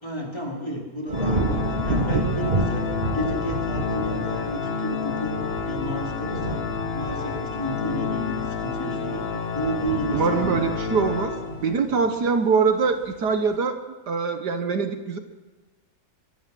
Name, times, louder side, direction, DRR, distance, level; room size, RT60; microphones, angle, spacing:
voice 1, 0.0-5.4 5.6-6.6 6.9-10.6 11.9-12.1, equal, 15° left, -1 dB, 4.1 m, -32 dB
Organ, 1.1-12.0, left 6 dB, 40° left, 1.1 m, -30 dB
sound 1, 1.1-12.4 12.8-13.3, right 2 dB, 30° right, 1.4 m, -31 dB
voice 2, 10.0-11.3 11.6-13.8 14.1-15.2, right 5 dB, 65° right, 7 dB, 1.8 m, -23 dB
26.0 x 22.5 x 6.1 m, 1.3 s
omnidirectional pair, 1.9 m